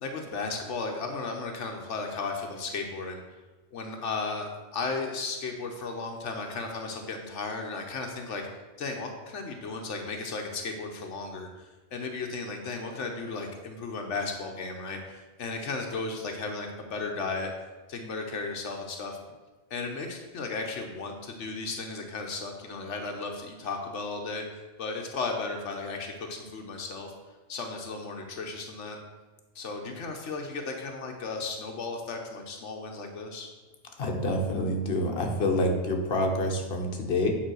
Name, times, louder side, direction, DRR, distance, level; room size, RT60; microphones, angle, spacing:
voice 1, 0.0-3.2 3.7-8.4 8.8-17.5 17.9-19.2 19.7-27.1 27.5-29.0 29.5-33.5, left 3 dB, 85° left, 3 dB, 1.2 m, -35 dB
voice 2, 34.0-37.3, left 1 dB, 60° left, 2 dB, 1.3 m, -27 dB
9.1 x 3.9 x 6.2 m, 1.2 s
omnidirectional pair, 1.2 m